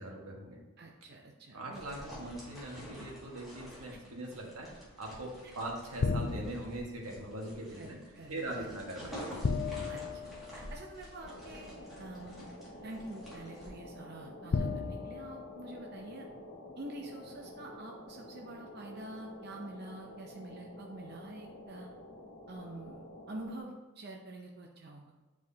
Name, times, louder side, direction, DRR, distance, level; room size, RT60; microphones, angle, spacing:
voice 1, 0.0-0.6 1.5-4.7 5.0-8.0 8.3-9.4, right 1 dB, 90° right, -1 dB, 1.5 m, -41 dB
voice 2, 0.8-1.8 3.9-4.0 7.7-8.8 9.9-12.5 12.8-16.3 16.8-21.9 22.5-25.1, right 2 dB, 45° right, 0 dB, 0.6 m, -47 dB
sound 1, 1.7-13.7, equal, ahead, 2.0 m, -49 dB
sound 2, 6.0-7.0 9.4-11.1 12.3-12.4 14.5-16.2, left 4 dB, 50° left, 0.4 m, -35 dB
sound 3, 11.2-23.6, left 1 dB, 65° left, 1.5 m, -50 dB
9.4 x 4.7 x 2.8 m, 1.3 s
head